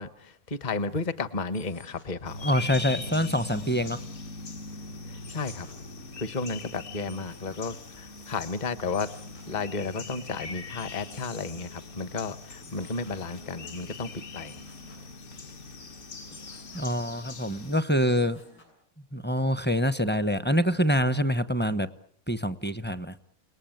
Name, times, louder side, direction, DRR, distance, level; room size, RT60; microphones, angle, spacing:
voice 1, 0.0-2.5 5.1-5.7 6.2-9.1 9.5-14.6, left 4 dB, 30° left, 13 dB, 1.2 m, -33 dB
sound 1, 0.8-18.6, left 1 dB, 90° left, 8.5 m, -57 dB
sound 2, 2.2-17.8, left 3 dB, 50° left, 1.7 m, -41 dB
voice 2, 2.4-4.0 16.7-18.4 19.1-21.9 22.3-23.1, equal, 10° left, 13 dB, 0.8 m, -25 dB
29.5 x 19.5 x 9.1 m, 0.65 s
omnidirectional pair, 1.6 m